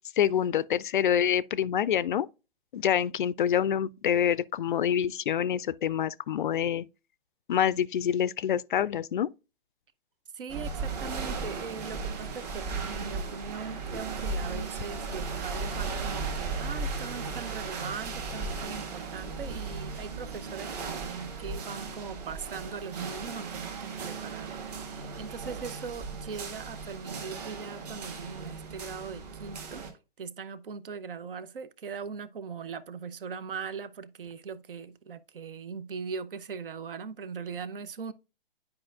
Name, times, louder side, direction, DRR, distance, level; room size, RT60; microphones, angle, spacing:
voice 1, 0.2-2.3 2.7-6.8 7.5-9.3, left 9 dB, 55° left, 0.4 m, -26 dB
voice 2, 10.3-29.8 30.2-38.1, right 5 dB, 60° right, 0.7 m, -40 dB
sound 1, 10.5-29.9, right 4 dB, 40° right, 1.6 m, -36 dB
10.5 x 4.8 x 2.4 m
figure-of-eight pair, 125°, 31 cm